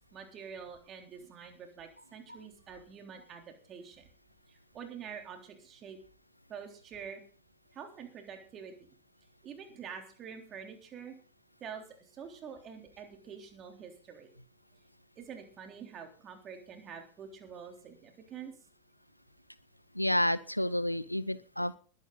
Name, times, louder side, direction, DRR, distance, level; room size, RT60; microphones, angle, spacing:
voice 1, 0.1-4.1 4.5-6.0 6.5-7.2 7.7-8.9 9.4-11.1 11.6-14.3 15.2-18.5, right 7 dB, 30° right, 3 dB, 3.6 m, -46 dB
voice 2, 19.9-21.8, left 1 dB, 90° left, 18 dB, 0.6 m, -30 dB
21.0 x 9.5 x 4.1 m, 0.41 s
figure-of-eight pair, 90°, 0 cm